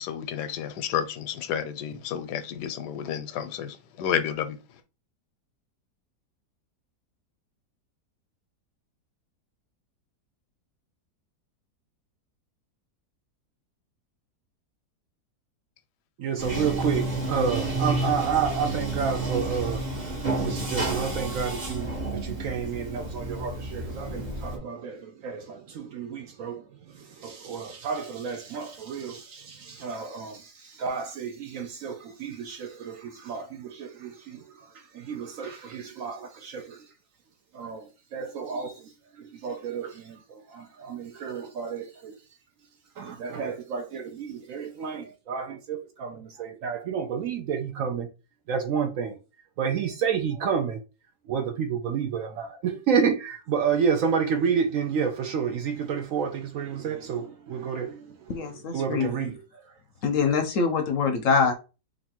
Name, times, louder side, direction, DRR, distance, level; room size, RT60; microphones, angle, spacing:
voice 1, 0.1-3.7 4.0-4.5, left 9 dB, 85° left, 1.2 m, -30 dB
voice 2, 16.2-26.6 27.0-34.4 34.9-36.8 37.5-37.8 38.1-38.8 39.2-42.2 43.0-48.1 48.5-49.2 49.6-50.8 51.3-58.0 58.7-59.4, right 6 dB, 70° right, 0.8 m, -30 dB
Bathtub (filling or washing), 16.4-24.6, right 2 dB, 30° right, 0.9 m, -30 dB
voice 3, 58.3-59.2 60.0-61.5, left 5 dB, 65° left, 0.9 m, -24 dB
3.1 x 2.7 x 4.2 m
omnidirectional pair, 1.7 m